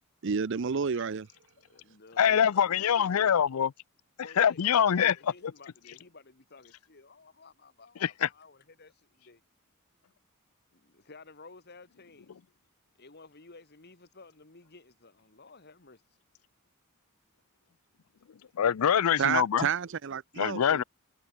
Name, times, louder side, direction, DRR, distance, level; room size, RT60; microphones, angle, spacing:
voice 1, 0.2-1.3 19.2-20.8, right 6 dB, 60° right, 0.6 m, -30 dB
voice 2, 1.6-3.1 4.2-9.4 10.7-12.4 13.0-16.0, left 3 dB, 50° left, 2.0 m, -53 dB
voice 3, 2.2-3.7 4.4-5.1 8.0-8.3 18.6-19.7 20.4-20.8, left 8 dB, 85° left, 0.5 m, -24 dB
head